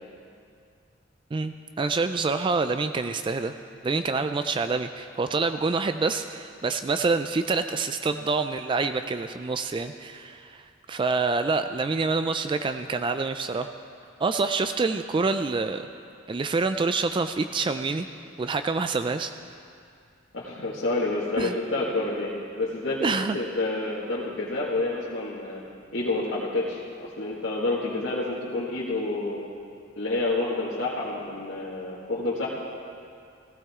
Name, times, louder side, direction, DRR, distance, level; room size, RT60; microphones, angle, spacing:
voice 1, 1.3-3.5 3.8-13.7 14.2-15.9 16.3-18.1 18.4-19.3 21.4-21.6 23.0-23.4, right 4 dB, 25° right, 9 dB, 0.3 m, -27 dB
voice 2, 20.3-23.1 23.3-25.6 25.9-26.8 27.2-29.4 30.0-32.5, left 2 dB, 85° left, -8 dB, 2.0 m, -28 dB
16.5 x 15.0 x 3.6 m, 2.4 s
head